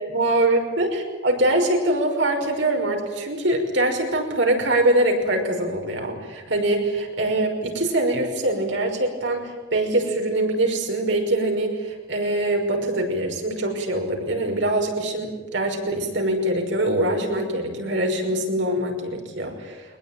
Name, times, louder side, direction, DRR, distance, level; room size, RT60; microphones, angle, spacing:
voice 1, 0.1-19.8, right 1 dB, 85° right, 2 dB, 5.7 m, -23 dB
22.0 x 21.0 x 9.2 m, 1.3 s
head